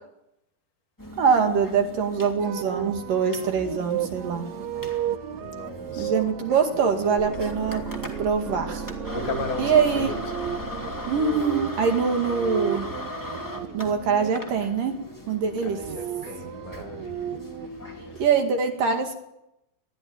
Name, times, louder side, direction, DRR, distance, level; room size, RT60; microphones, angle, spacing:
sound 1, 1.0-18.3, left 1 dB, 5° left, 1.9 m, -39 dB
voice 1, 1.2-4.5 6.0-7.8 8.2-8.8 9.6-10.1 11.1-12.9 13.7-14.9 15.3-15.8 18.2-19.2, right 6 dB, 65° right, 4 dB, 3.6 m, -23 dB
sound 2, 2.4-14.3 15.5-17.7, right 11 dB, 85° right, 1.5 m, -35 dB
voice 2, 5.4-6.3 9.1-10.2 15.6-17.4 17.9-18.2, left 4 dB, 80° left, 4 dB, 4.6 m, -36 dB
sound 3, 7.2-13.2, right 4 dB, 25° right, 1.8 m, -37 dB
21.0 x 14.5 x 9.2 m, 0.84 s
omnidirectional pair, 4.4 m